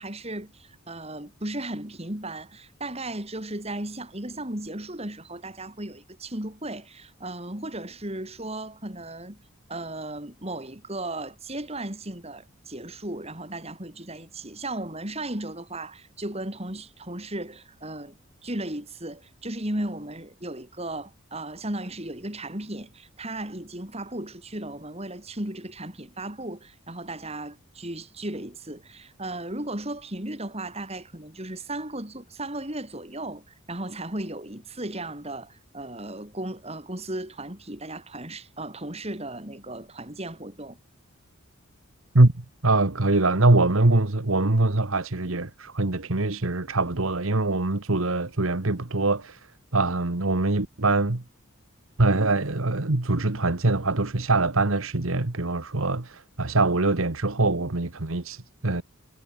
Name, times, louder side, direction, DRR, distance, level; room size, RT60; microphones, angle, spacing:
voice 1, 0.0-9.4 9.7-40.8, right 1 dB, 30° right, 4.2 m, -35 dB
voice 2, 42.1-49.4 49.7-51.2 52.0-58.8, right 2 dB, 70° right, 1.6 m, -23 dB
head